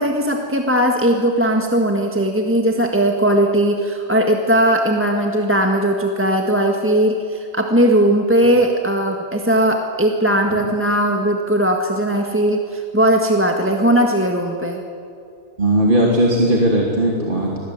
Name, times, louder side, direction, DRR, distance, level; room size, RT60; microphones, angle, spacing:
voice 1, 0.0-14.8, right 1 dB, 10° right, 2 dB, 1.6 m, -18 dB
voice 2, 15.6-17.6, right 1 dB, 30° right, -2 dB, 3.0 m, -17 dB
27.0 x 20.0 x 9.5 m, 2.5 s
omnidirectional pair, 1.7 m